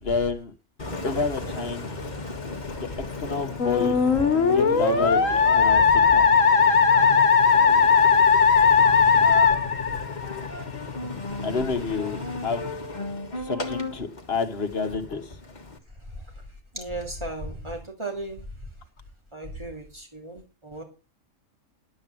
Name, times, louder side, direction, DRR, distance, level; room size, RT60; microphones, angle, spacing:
voice 1, 0.0-0.5 1.0-1.9 2.8-2.9 3.2-3.9 4.5-6.2 11.4-12.6 13.4-15.2, left 4 dB, 50° left, 7 dB, 1.6 m, -29 dB
Engine, 0.8-15.8, left 3 dB, 35° left, 1.6 m, -35 dB
Musical instrument, 3.6-10.5, left 5 dB, 85° left, 1.7 m, -18 dB
voice 2, 16.7-18.4 19.3-20.8, right 2 dB, 20° right, 1 dB, 3.1 m, -35 dB
11.5 x 5.6 x 7.7 m, 0.34 s
omnidirectional pair, 1.3 m